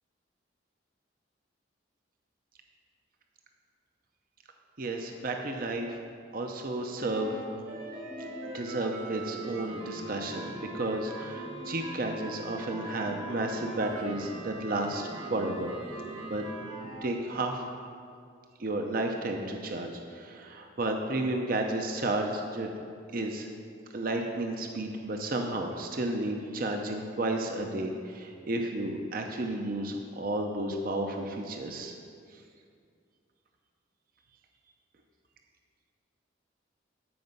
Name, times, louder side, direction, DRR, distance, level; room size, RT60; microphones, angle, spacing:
voice 1, 4.8-6.0 6.3-7.4 8.5-15.7 16.2-16.4 17.0-17.7 18.6-22.7 23.1-23.5 23.9-32.0, right 2 dB, 45° right, 3 dB, 0.7 m, -32 dB
sound 1, 7.0-17.0, right 2 dB, 75° right, 2.8 m, -41 dB
13.5 x 5.3 x 5.3 m, 2.3 s
head